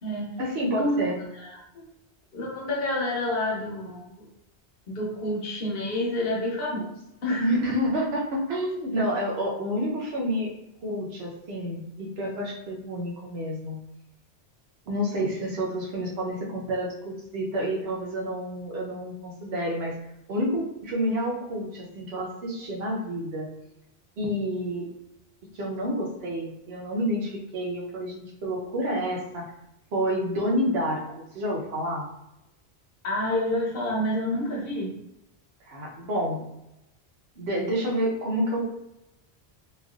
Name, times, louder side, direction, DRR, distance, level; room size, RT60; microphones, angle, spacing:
voice 1, 0.4-1.2 7.4-10.5 10.8-13.8 14.9-20.0 20.3-23.5 24.2-24.9 25.5-29.5 29.9-32.1 35.7-36.4 37.4-38.7, equal, 75° right, -2 dB, 1.0 m, -29 dB
voice 2, 1.3-1.8 2.3-4.2 4.9-6.9 7.2-7.6 33.0-34.9, left 1 dB, 65° left, -3 dB, 1.0 m, -28 dB
3.1 x 2.4 x 2.4 m, 0.87 s
omnidirectional pair, 1.1 m